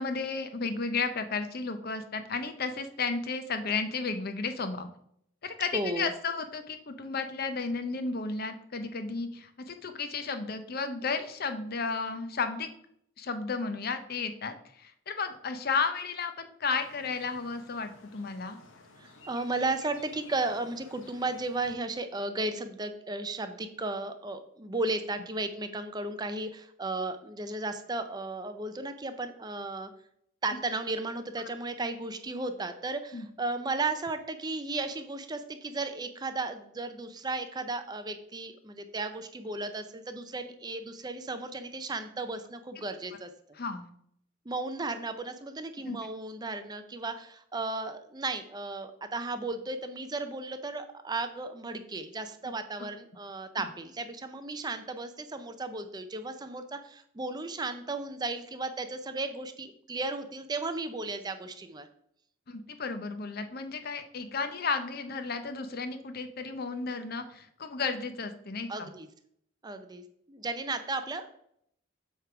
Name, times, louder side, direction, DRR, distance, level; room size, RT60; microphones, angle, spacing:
voice 1, 0.0-4.9 5.4-12.7 13.2-18.6 33.1-33.3 43.6-43.9 45.8-46.0 52.4-52.5 62.5-68.9, left 4 dB, 50° left, 9 dB, 0.7 m, -33 dB
voice 2, 5.7-6.1 19.0-29.9 30.4-43.3 44.5-61.9 68.7-69.1 69.6-71.3, right 2 dB, 20° right, 9 dB, 0.5 m, -35 dB
sound 1, 16.7-21.7, left 3 dB, 80° left, 1.0 m, -54 dB
7.8 x 3.3 x 5.9 m, 0.70 s
head